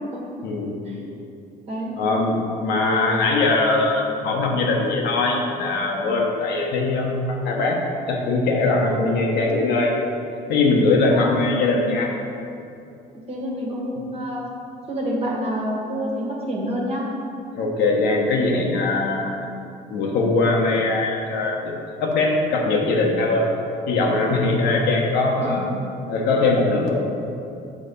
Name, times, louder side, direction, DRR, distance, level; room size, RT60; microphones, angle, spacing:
voice 1, 2.0-7.8 8.1-10.0 10.5-12.2 17.5-19.5 19.9-21.7 22.0-23.5 23.9-25.6 26.1-26.9, left 3 dB, 80° left, 0 dB, 1.1 m, -21 dB
voice 2, 13.3-14.4 14.9-17.0 25.4-25.7, equal, 35° right, -3 dB, 1.4 m, -27 dB
6.4 x 4.2 x 5.3 m, 2.6 s
cardioid pair, 110°, 17 cm